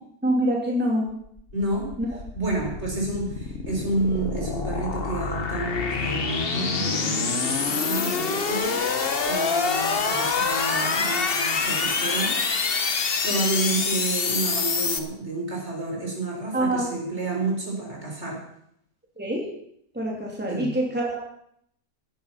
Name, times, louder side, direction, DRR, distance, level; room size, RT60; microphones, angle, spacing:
voice 1, 0.2-1.1 2.0-2.1 16.5-16.9 19.2-19.5 19.9-21.2, right 1 dB, 5° right, -2 dB, 2.9 m, -25 dB
sound 1, 1.3-15.0, left 5 dB, 45° left, 1.3 m, -26 dB
voice 2, 1.5-1.9 2.3-8.8 9.3-12.7 13.2-18.4 20.5-20.7, right 2 dB, 50° right, -1 dB, 4.5 m, -30 dB
16.5 x 10.5 x 5.7 m, 0.72 s
omnidirectional pair, 1.5 m